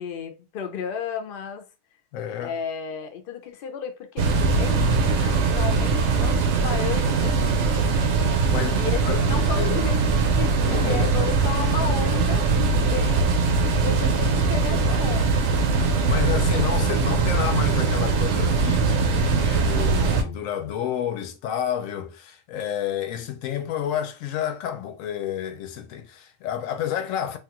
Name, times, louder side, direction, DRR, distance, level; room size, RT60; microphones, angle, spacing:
voice 1, 0.0-1.7 2.4-4.3 4.6-7.9 8.7-13.3 13.7-15.5, left 7 dB, 55° left, 0.7 m, -33 dB
voice 2, 2.1-2.6 8.5-9.2 9.6-9.9 10.7-11.1 16.0-27.4, left 10 dB, 85° left, 1.0 m, -30 dB
Machine Room Ambience XY, 4.2-20.2, right 4 dB, 70° right, 0.9 m, -21 dB
3.1 x 2.3 x 2.9 m
omnidirectional pair, 1.3 m